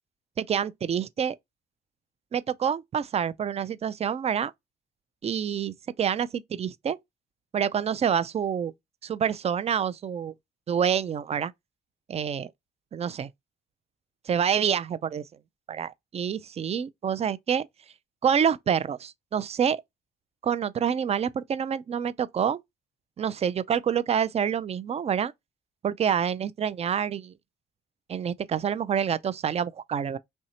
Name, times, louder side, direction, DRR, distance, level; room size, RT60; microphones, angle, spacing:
voice 1, 0.4-1.4 2.3-4.5 5.2-7.0 7.5-8.7 9.0-10.3 10.7-11.5 12.1-12.5 12.9-13.3 14.3-15.2 15.7-17.7 18.2-19.8 20.4-22.6 23.2-25.3 25.8-27.3 28.1-30.2, right 8 dB, 30° right, 0.3 m, -27 dB
3.2 x 2.7 x 2.8 m
cardioid pair, 90°, 20 cm